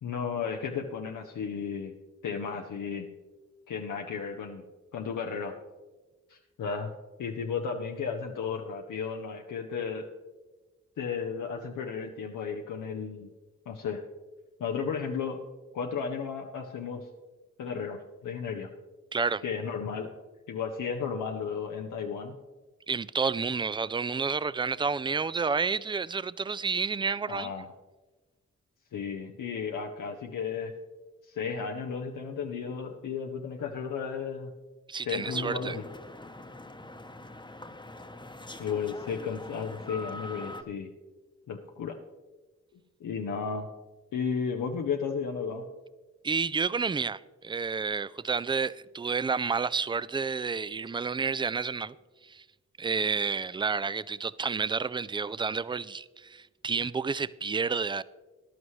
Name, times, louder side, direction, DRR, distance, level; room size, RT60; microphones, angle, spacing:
voice 1, 0.0-1.9 2.2-3.1 3.7-4.6 4.9-5.5 6.3-6.9 7.2-10.0 11.0-13.3 13.7-14.0 14.6-15.4 15.7-17.1 17.6-18.7 19.4-20.1 20.5-22.4 25.4-25.5 27.3-27.7 28.9-30.7 31.2-34.5 35.0-35.8 38.6-40.9 41.5-42.0 43.0-43.7 44.1-45.7, left 6 dB, 90° left, 0.7 m, -34 dB
voice 2, 19.1-19.4 22.9-27.5 34.9-35.8 46.2-51.9 52.2-52.4 52.8-58.0, right 5 dB, 15° right, 0.3 m, -30 dB
sound 1, 35.2-40.6, left 2 dB, 15° left, 0.9 m, -43 dB
14.0 x 11.0 x 3.2 m
cardioid pair, 50°, 30 cm